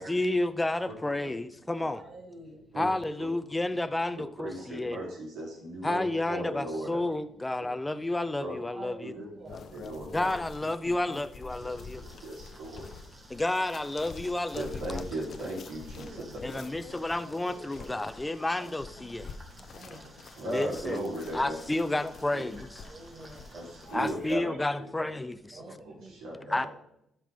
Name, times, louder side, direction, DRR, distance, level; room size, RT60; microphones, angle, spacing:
voice 1, 0.0-2.0 2.8-5.0 5.8-9.1 10.1-12.0 13.3-15.0 16.4-19.3 20.5-21.0 21.3-22.7 23.9-25.6 26.5-26.7, left 2 dB, 15° left, 11 dB, 0.5 m, -31 dB
voice 2, 1.6-2.8 4.4-5.2 7.2-7.5 8.7-10.0 11.7-13.4 16.0-16.4 19.3-20.4 22.8-24.6 25.2-26.5, right 1 dB, 60° right, -4 dB, 2.2 m, -50 dB
voice 3, 4.4-7.0 8.4-8.5 9.0-9.2 9.7-10.3 11.6-11.7 12.0-12.9 14.5-16.2 17.5-17.9 20.3-21.6 22.3-22.4 23.5-24.5 25.0-25.1 25.5-26.7, right 1 dB, 90° right, -4 dB, 3.9 m, -37 dB
sound 1, 9.5-24.3, left 5 dB, 60° left, 0.7 m, -47 dB
sound 2, 11.5-23.9, right 2 dB, 35° right, 2.4 m, -54 dB
13.0 x 5.8 x 3.7 m, 0.78 s
cardioid pair, 90°, 0 cm